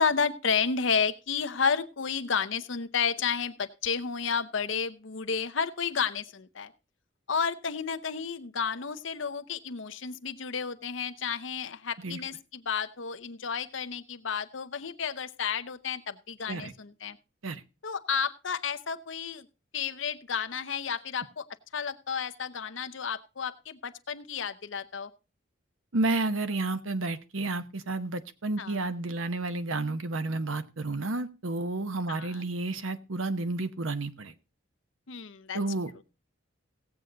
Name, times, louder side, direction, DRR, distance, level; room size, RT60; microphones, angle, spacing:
voice 1, 0.0-6.7 7.3-17.2 17.8-19.5 19.7-21.5 21.7-25.1 28.6-28.9 32.1-32.5 35.1-35.6 35.9-36.0, left 6 dB, 70° left, 11 dB, 0.8 m, -31 dB
voice 2, 25.9-34.3 35.5-36.0, right 2 dB, 85° right, 11 dB, 0.9 m, -31 dB
17.0 x 7.9 x 3.9 m, 0.29 s
head